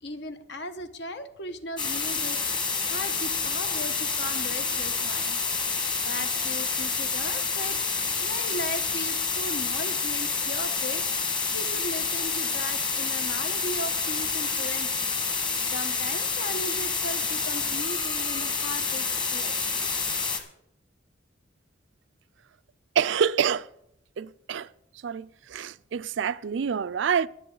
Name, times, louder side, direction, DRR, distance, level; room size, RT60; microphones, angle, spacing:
voice 1, 0.0-5.4 6.0-7.8 8.2-19.9, left 1 dB, 65° left, 1.2 m, -38 dB
sound 1, 1.8-20.4, left 4 dB, 25° left, 1.6 m, -28 dB
voice 2, 23.0-23.7 24.2-24.7 25.0-27.3, right 7 dB, 75° right, 0.4 m, -27 dB
22.5 x 8.2 x 3.9 m
head